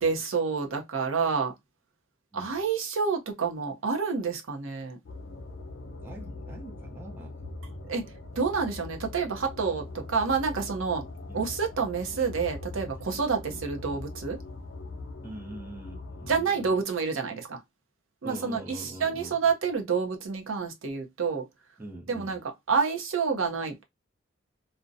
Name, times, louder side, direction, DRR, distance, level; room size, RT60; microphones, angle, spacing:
voice 1, 0.0-1.5 2.3-5.0 7.9-8.0 8.4-11.1 11.3-14.4 16.3-17.6 18.2-21.4 22.1-22.4 22.7-23.8, right 5 dB, 75° right, 0.6 m, -28 dB
sound 1, 5.0-16.4, left 2 dB, 60° left, 0.6 m, -42 dB
voice 2, 6.0-7.9 11.3-11.5 13.5-13.7 15.2-16.8 18.2-19.4 21.8-22.3, right 1 dB, 10° right, 0.6 m, -43 dB
2.5 x 2.0 x 2.5 m
head